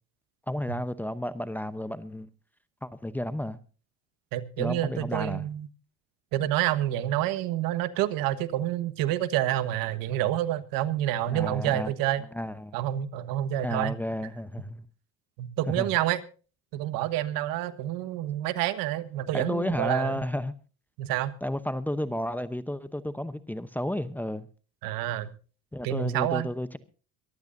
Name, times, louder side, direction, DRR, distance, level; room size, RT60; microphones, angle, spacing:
voice 1, 0.5-2.3 2.8-3.6 4.6-5.4 11.3-11.9 12.3-12.7 13.6-14.9 15.8-15.9 19.3-20.5 21.4-24.5 25.7-26.8, left 1 dB, 5° left, 0.8 m, -32 dB
voice 2, 4.3-5.7 6.3-12.2 12.7-13.9 15.4-16.2 16.7-20.2 21.0-21.3 24.8-25.3 25.8-26.5, right 13 dB, 65° right, 1.4 m, -28 dB
23.0 x 14.5 x 2.6 m
supercardioid pair, 105°, 36 cm